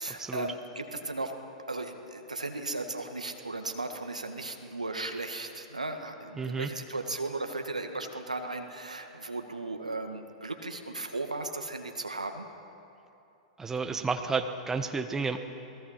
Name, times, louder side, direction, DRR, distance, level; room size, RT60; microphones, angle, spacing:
voice 1, 0.0-1.4 1.7-12.5, right 2 dB, 85° right, 5 dB, 1.8 m, -36 dB
voice 2, 6.4-6.7 13.6-15.4, right 4 dB, 10° right, 6 dB, 1.2 m, -31 dB
28.0 x 20.5 x 5.8 m, 2.8 s
figure-of-eight pair, 100°, 4 cm